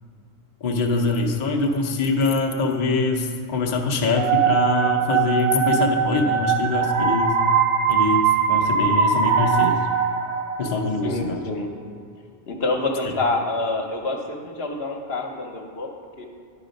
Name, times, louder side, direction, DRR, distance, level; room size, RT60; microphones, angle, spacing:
voice 1, 0.6-7.4 7.9-9.8 10.6-11.4, left 3 dB, 45° left, 2 dB, 0.7 m, -23 dB
sound 1, 4.1-10.9, right 7 dB, 85° right, 1.0 m, -21 dB
voice 2, 11.0-11.7 12.5-15.9 16.2-16.3, left 2 dB, 65° left, 2 dB, 1.1 m, -27 dB
10.5 x 4.8 x 5.1 m, 2.3 s
omnidirectional pair, 1.2 m